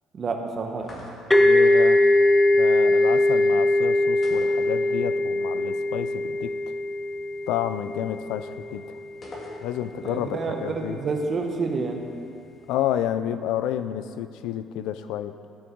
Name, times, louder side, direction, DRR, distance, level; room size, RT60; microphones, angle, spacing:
voice 1, 0.2-1.1 10.0-12.0, right 4 dB, 35° right, 3 dB, 1.0 m, -29 dB
sound 1, 0.8-1.5 4.2-5.3 5.5-5.6 9.2-10.0, left 1 dB, 35° left, 1.9 m, -43 dB
sound 2, 1.3-8.8, left 1 dB, 10° left, 0.6 m, -21 dB
voice 2, 1.4-2.1 2.5-6.7 7.5-9.0 9.6-11.0 12.7-15.4, left 11 dB, 85° left, 12 dB, 0.4 m, -30 dB
13.5 x 6.4 x 4.6 m, 2.5 s
cardioid pair, 140°, 0 cm